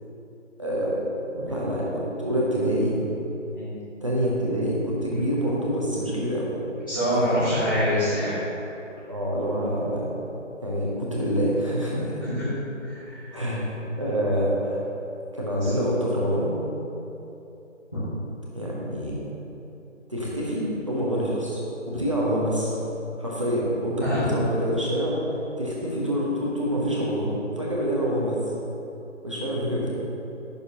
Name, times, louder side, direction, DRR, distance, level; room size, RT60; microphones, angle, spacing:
voice 1, 0.6-1.0 1.5-3.0 4.0-6.5 7.2-7.4 8.1-8.2 9.1-10.1 10.6-12.1 13.3-13.7 14.0-14.8 15.3-16.5 18.5-19.2 20.1-21.6 21.9-22.7 23.2-25.2 25.6-28.4 29.2-29.9, equal, 25° right, -6 dB, 1.0 m, -26 dB
voice 2, 6.9-8.5 12.2-12.5 12.9-13.2 17.9-18.0 24.0-24.3, equal, 15° left, -16 dB, 1.1 m, -25 dB
9.5 x 6.7 x 2.8 m, 3.0 s
figure-of-eight pair, 175°, 38 cm